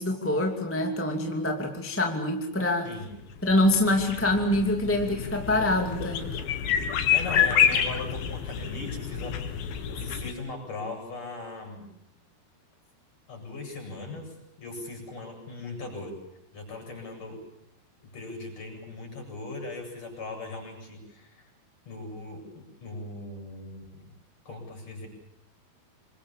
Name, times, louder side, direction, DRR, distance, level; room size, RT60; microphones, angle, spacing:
voice 1, 0.0-2.9 3.4-6.4, left 1 dB, 5° left, 2 dB, 1.6 m, -25 dB
sound 1, 3.1-10.3, left 8 dB, 65° left, 3.4 m, -28 dB
voice 2, 7.1-11.9 13.3-16.2 16.5-17.4 18.0-21.4 21.9-24.0 24.5-25.1, left 2 dB, 35° left, 2 dB, 8.8 m, -39 dB
28.0 x 23.5 x 7.5 m, 0.78 s
omnidirectional pair, 5.0 m